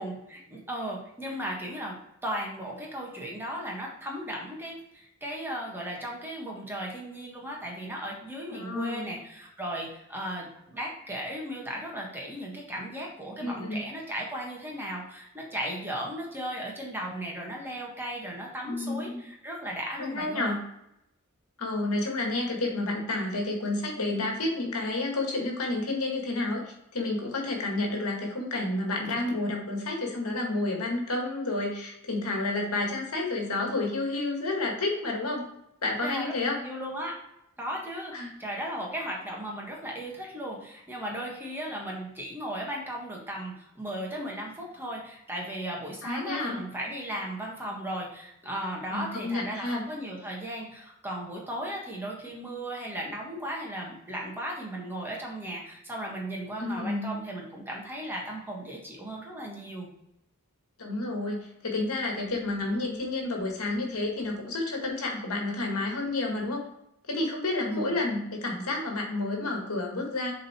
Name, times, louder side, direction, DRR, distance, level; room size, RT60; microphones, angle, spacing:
voice 1, 0.0-2.0 2.2-20.6 36.0-36.3 36.6-37.2 37.6-59.9 67.7-67.9, right 1 dB, 10° right, -2 dB, 1.6 m, -36 dB
voice 2, 8.5-9.1 13.4-13.8 18.7-19.2 20.0-20.6 21.6-35.4 35.8-36.6 38.1-38.3 46.0-46.6 48.9-49.8 56.6-57.1 60.8-66.6 67.1-70.3, left 2 dB, 80° left, 1 dB, 1.8 m, -30 dB
7.5 x 3.9 x 4.3 m, 0.82 s
head